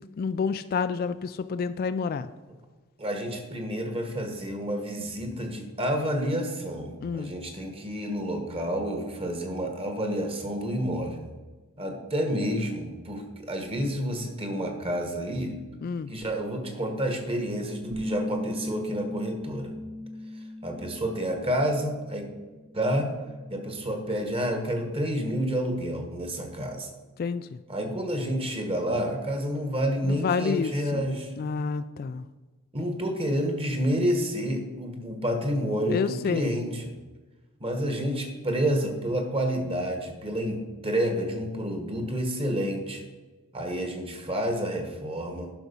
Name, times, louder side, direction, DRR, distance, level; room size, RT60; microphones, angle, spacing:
voice 1, 0.0-2.3 7.0-7.3 15.8-16.1 27.2-27.6 30.0-31.1 31.4-32.2 35.9-36.6, left 5 dB, 45° left, 12 dB, 0.3 m, -29 dB
voice 2, 3.0-11.3 11.8-15.5 16.1-19.7 20.6-22.3 22.7-23.1 23.5-26.9 27.7-31.3 32.7-36.9 37.6-43.0 43.5-45.5, equal, 25° right, 4 dB, 1.4 m, -29 dB
Bass guitar, 17.9-22.2 22.5-24.1, left 1 dB, 55° right, 1.3 m, -37 dB
10.5 x 6.1 x 5.5 m, 1.2 s
head